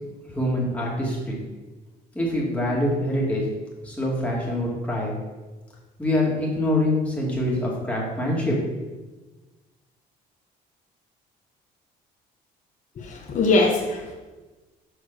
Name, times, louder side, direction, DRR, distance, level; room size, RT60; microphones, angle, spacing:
voice 1, 0.2-1.4 2.1-3.4 3.8-5.2 6.0-8.6, left 1 dB, 10° left, -4 dB, 2.4 m, -25 dB
voice 2, 13.1-14.1, left 2 dB, 45° left, -3 dB, 1.1 m, -21 dB
6.2 x 4.8 x 6.2 m, 1.2 s
cardioid pair, 110°, 17 cm